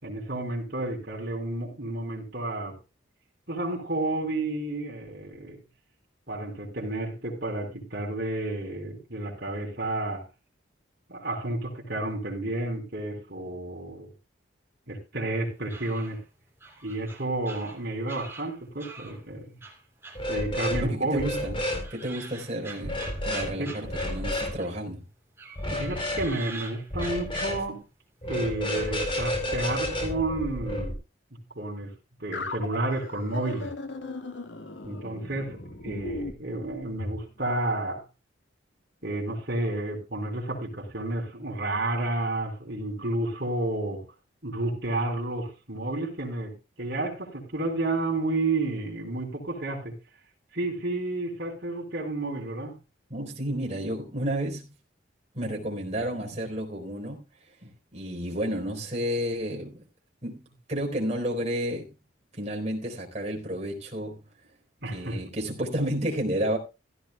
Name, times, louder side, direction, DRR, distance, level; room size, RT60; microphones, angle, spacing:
voice 1, 0.0-2.8 3.5-5.6 6.3-10.2 11.1-14.1 14.9-16.2 16.8-19.6 20.3-21.2 23.6-23.9 25.7-27.8 28.2-31.0 31.5-31.9 32.2-33.7 34.8-38.0 39.0-44.0 44.4-49.9 50.5-52.7 64.8-65.2, right 2 dB, 55° right, 4.5 m, -31 dB
sound 1, 15.4-19.2 19.6-20.9 21.2-24.9 25.3-27.9 28.3-28.9, right 3 dB, 15° right, 3.1 m, -45 dB
sound 2, 20.2-20.8 21.1-21.8 22.8-23.5 23.9-24.5 25.6-26.3 26.9-27.6 28.2-30.9, left 1 dB, 30° left, 4.0 m, -30 dB
voice 2, 20.8-21.6 21.9-25.0 53.1-54.7 55.3-57.2 57.6-59.8 60.2-61.9 62.3-64.2 64.9-66.6, equal, 35° right, 4.0 m, -31 dB
sound 3, 32.3-37.2, left 2 dB, 75° left, 1.8 m, -38 dB
16.0 x 13.5 x 2.3 m
head